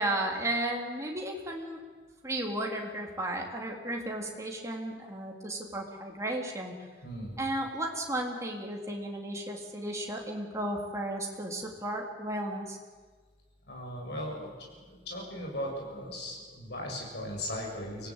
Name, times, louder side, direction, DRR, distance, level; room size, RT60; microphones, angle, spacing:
voice 1, 0.0-1.8 2.2-6.8 7.4-12.8, right 1 dB, 15° right, 0 dB, 3.6 m, -34 dB
voice 2, 7.0-7.4 13.7-18.1, left 1 dB, 65° left, -1 dB, 7.5 m, -38 dB
25.5 x 18.0 x 9.0 m, 1.4 s
head